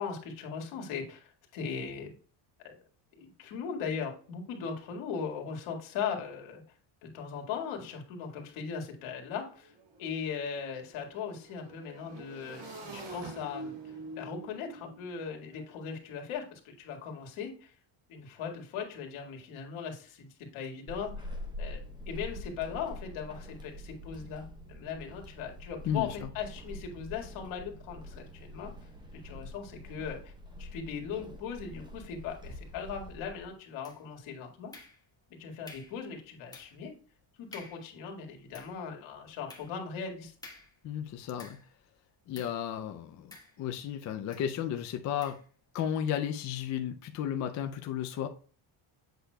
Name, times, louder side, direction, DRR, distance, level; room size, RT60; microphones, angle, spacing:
voice 1, 0.0-2.1 2.6-2.8 3.2-6.6 7.0-9.7 10.0-13.7 14.1-17.7 18.1-21.3 21.6-28.7 29.1-30.3 30.6-34.7 35.4-36.9 37.4-40.3, left 6 dB, 70° left, 2.0 m, -39 dB
Motorcycle / Engine, 8.7-8.8 9.1-16.2, right 2 dB, 90° right, 3.8 m, -47 dB
Walk footsteps / Squeak, 20.9-33.5, left 1 dB, 10° right, 0.7 m, -45 dB
voice 2, 25.9-26.3 40.8-41.6 42.3-45.4 45.7-48.3, left 9 dB, 35° left, 0.4 m, -33 dB
sound 1, 33.8-34.2 34.7-35.3 35.7-36.0 36.5-36.9 37.2-37.3 37.5-37.9 38.3-41.8 42.3-42.7 43.3-43.9 44.3-44.5 45.2-45.5, left 3 dB, 10° left, 1.3 m, -52 dB
8.0 x 6.4 x 2.2 m
cardioid pair, 165°, 50 cm